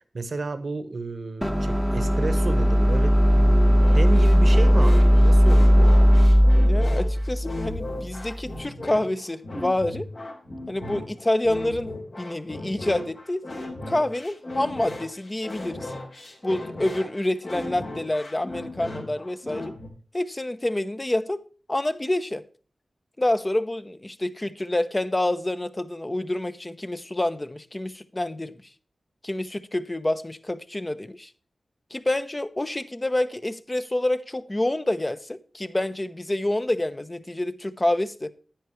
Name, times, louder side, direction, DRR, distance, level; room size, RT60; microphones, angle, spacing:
voice 1, 0.1-6.0, right 3 dB, 65° right, 1.2 m, -31 dB
sound 1, 1.4-8.5, equal, ahead, 1.0 m, -18 dB
sound 2, 3.8-19.9, left 1 dB, 70° left, 3.6 m, -36 dB
voice 2, 6.6-10.1 10.7-11.9 12.2-15.9 16.4-19.7 20.1-21.4 21.7-22.4 23.2-28.5 29.2-31.3 31.9-38.3, left 1 dB, 25° left, 0.9 m, -27 dB
10.5 x 9.2 x 3.2 m
cardioid pair, 45°, 0 cm